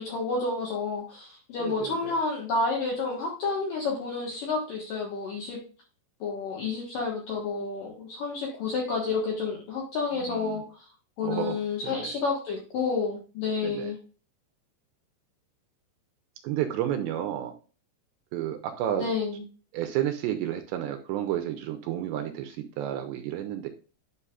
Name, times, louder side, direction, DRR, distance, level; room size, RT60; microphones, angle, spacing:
voice 1, 0.0-5.6 6.2-10.9 11.2-14.0 19.0-19.4, left 4 dB, 65° left, -1 dB, 2.3 m, -30 dB
voice 2, 1.6-2.2 10.1-10.6 11.2-12.1 13.6-13.9 16.4-17.5 18.3-19.1 19.7-23.7, right 11 dB, 80° right, 6 dB, 2.7 m, -31 dB
11.0 x 5.5 x 2.4 m, 0.37 s
omnidirectional pair, 5.5 m